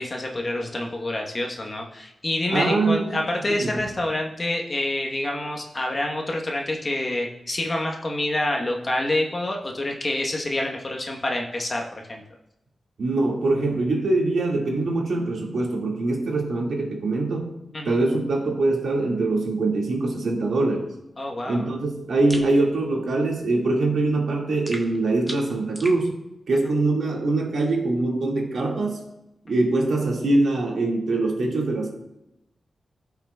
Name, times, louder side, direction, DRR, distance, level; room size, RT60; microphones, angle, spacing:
voice 1, 0.0-11.8 12.1-12.2 17.7-18.0 21.2-21.7 26.5-26.7, left 1 dB, 35° left, 1 dB, 1.0 m, -27 dB
voice 2, 2.5-3.2 3.6-3.7 13.0-17.5 17.9-20.9 21.5-26.1 26.5-29.0 29.5-31.9, right 2 dB, 85° right, 0 dB, 1.9 m, -23 dB
sound 1, 22.3-22.5 24.7-26.0, equal, ahead, 1.3 m, -37 dB
15.0 x 5.9 x 2.3 m, 0.89 s
wide cardioid pair, 95°, 0 cm